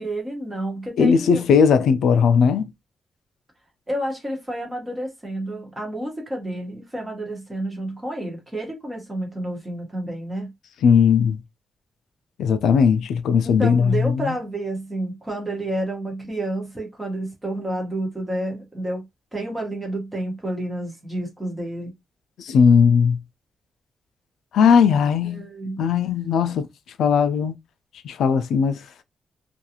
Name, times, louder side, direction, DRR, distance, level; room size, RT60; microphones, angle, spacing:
voice 1, 0.0-1.4 3.9-10.5 13.4-19.1 19.3-21.9 25.2-25.9, right 1 dB, 15° right, 1.1 m, -30 dB
voice 2, 1.0-2.7 10.8-11.4 12.4-14.4 22.4-23.2 24.5-25.5 25.8-26.7 27.0-27.5 28.0-28.8, left 6 dB, 90° left, 0.3 m, -18 dB
2.4 x 2.3 x 2.8 m
wide cardioid pair, 150°, 0 cm